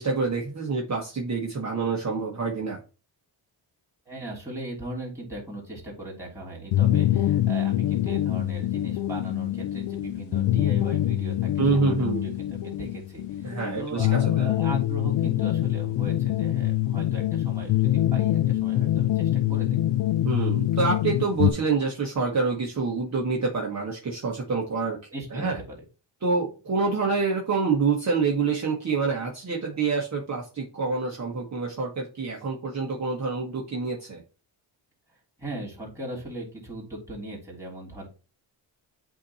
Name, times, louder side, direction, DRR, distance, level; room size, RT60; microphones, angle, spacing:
voice 1, 0.0-2.8 11.6-12.2 13.4-14.5 20.2-25.0 25.3-25.6 26.2-34.2, right 4 dB, 35° right, -2 dB, 1.3 m, -27 dB
voice 2, 4.0-19.8 25.1-25.8 35.4-38.1, right 1 dB, 5° right, -4 dB, 3.0 m, -38 dB
sound 1, 6.7-21.5, left 13 dB, 65° left, 0.5 m, -25 dB
8.6 x 2.9 x 4.1 m, 0.33 s
cardioid pair, 130°, 46 cm